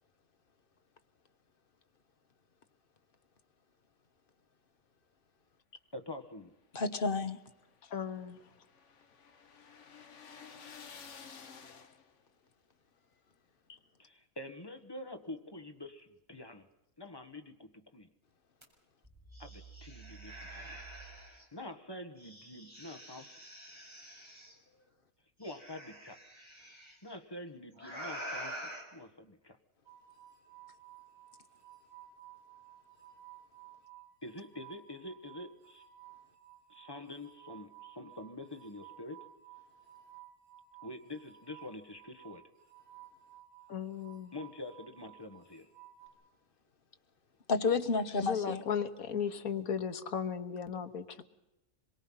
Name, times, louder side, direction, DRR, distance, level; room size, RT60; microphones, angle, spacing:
voice 1, 5.9-6.5 14.0-16.7 17.0-18.1 19.4-20.8 21.3-23.4 25.4-26.2 27.0-29.6 34.2-35.8 36.7-39.3 40.8-42.4 44.3-45.7, left 1 dB, 15° left, 6 dB, 1.5 m, -46 dB
voice 2, 6.7-7.4 47.5-48.6, left 4 dB, 40° left, 9 dB, 1.2 m, -30 dB
sound 1, 6.8-12.3, left 6 dB, 60° left, 1.5 m, -53 dB
voice 3, 7.9-8.4 43.7-44.3 48.2-51.1, left 7 dB, 85° left, 9 dB, 1.7 m, -36 dB
sound 2, 18.6-18.7 19.0-21.4 22.2-24.5 25.4-26.9 27.8-28.8, right 1 dB, 20° right, 5.0 m, -46 dB
sound 3, 29.9-46.1, right 12 dB, 75° right, 7.4 m, -56 dB
26.0 x 23.0 x 5.7 m, 0.96 s
omnidirectional pair, 1.5 m